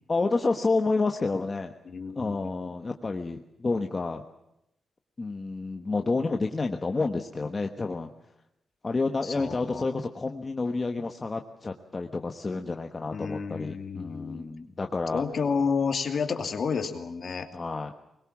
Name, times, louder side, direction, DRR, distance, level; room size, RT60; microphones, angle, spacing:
voice 1, 0.1-1.7 2.2-4.2 5.2-8.1 8.8-15.2 17.5-17.9, left 3 dB, 25° left, 4 dB, 1.2 m, -29 dB
voice 2, 1.9-2.7 9.2-9.9 13.1-14.5 15.1-17.5, left 5 dB, 45° left, 7 dB, 2.6 m, -30 dB
24.0 x 21.5 x 7.3 m, 0.86 s
wide cardioid pair, 165°, 0 cm